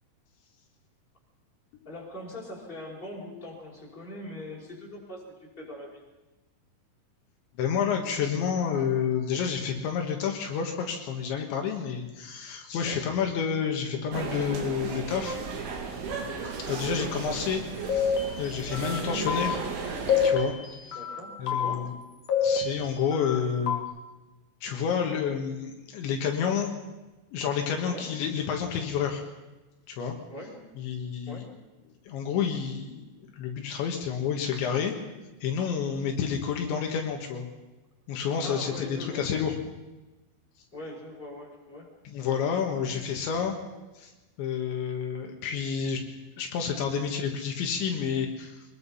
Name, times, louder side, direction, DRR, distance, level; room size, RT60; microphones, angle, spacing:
voice 1, 1.8-5.2 5.6-6.0 12.8-13.0 16.9-17.4 20.9-21.9 27.9-28.1 30.3-30.6 31.3-31.4 38.4-39.2 40.7-41.9 43.0-43.1, left 1 dB, 10° left, -2 dB, 5.1 m, -41 dB
voice 2, 7.6-15.4 16.4-18.1 18.4-19.6 20.2-21.0 21.4-21.9 22.4-23.7 24.6-26.7 27.3-29.2 29.9-30.2 30.8-31.4 32.1-34.9 35.4-37.5 38.1-39.6 42.1-43.6 44.0-44.1 44.4-46.0 46.4-48.6, left 7 dB, 75° left, 3 dB, 3.9 m, -29 dB
sound 1, 14.1-20.3, right 5 dB, 85° right, 5.0 m, -35 dB
sound 2, 17.9-19.0 19.3-19.6 20.1-21.2 21.5-21.7 22.3-23.4 23.7-23.8, left 6 dB, 50° left, 2.7 m, -27 dB
24.0 x 21.0 x 5.6 m, 1.1 s
omnidirectional pair, 5.4 m